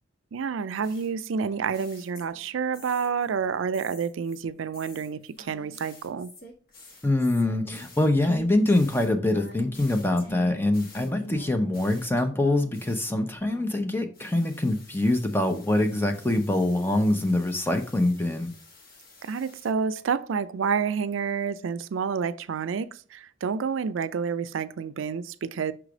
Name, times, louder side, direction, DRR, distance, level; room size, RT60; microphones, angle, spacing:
voice 1, 0.3-6.3 19.2-25.7, right 6 dB, 90° right, 0.4 m, -29 dB
sound 1, 0.8-3.3 3.7-13.8 14.1-19.7, left 1 dB, 50° left, 1.3 m, -47 dB
voice 2, 7.0-18.5, left 1 dB, 10° left, 0.6 m, -24 dB
5.9 x 3.2 x 4.9 m
head